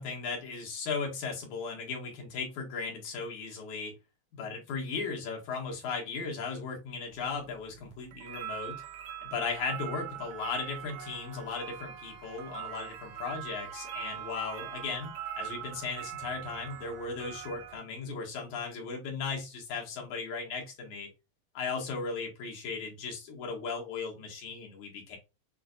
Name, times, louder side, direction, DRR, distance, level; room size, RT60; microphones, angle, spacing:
voice 1, 0.0-3.9 4.3-8.8 9.2-21.1 21.5-25.2, left 5 dB, 85° left, 0 dB, 2.9 m, -37 dB
sound 1, 7.1-17.8, right 11 dB, 75° right, 1.9 m, -42 dB
Wind instrument woodwind instrument, 11.5-15.2, right 1 dB, 60° right, 1.2 m, -51 dB
7.5 x 2.7 x 2.5 m, 0.26 s
omnidirectional pair, 3.3 m